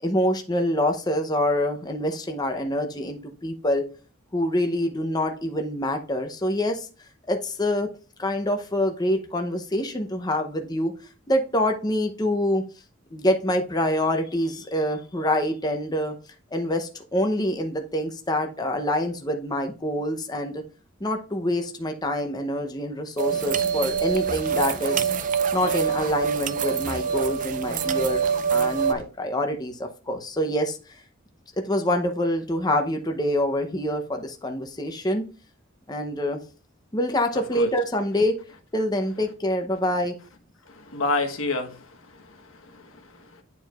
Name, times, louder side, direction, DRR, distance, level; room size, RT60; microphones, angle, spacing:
voice 1, 0.0-3.8 4.3-6.9 7.3-7.9 8.2-10.9 11.3-12.6 13.1-16.1 16.5-20.6 21.0-25.1 25.5-28.2 28.5-30.8 31.6-35.3 35.9-36.4 36.9-38.3 38.7-40.2, left 1 dB, 20° left, 0.7 m, -26 dB
sound 1, 23.2-28.9, right 7 dB, 40° right, 0.4 m, -25 dB
at the bus station, 23.3-29.0, left 1 dB, 45° left, 1.8 m, -40 dB
voice 2, 40.7-42.4 42.7-42.9, left 3 dB, 85° left, 1.2 m, -28 dB
9.7 x 4.5 x 2.4 m
head